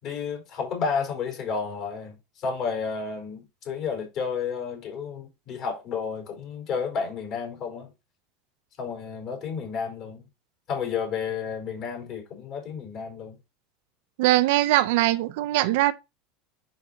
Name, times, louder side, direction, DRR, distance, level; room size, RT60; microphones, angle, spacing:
voice 1, 0.0-7.9 8.8-10.3 10.7-13.4, left 6 dB, 50° left, 4.4 m, -31 dB
voice 2, 14.2-15.9, right 16 dB, 65° right, 0.5 m, -21 dB
11.0 x 4.4 x 2.8 m
hypercardioid pair, 80°, 0 cm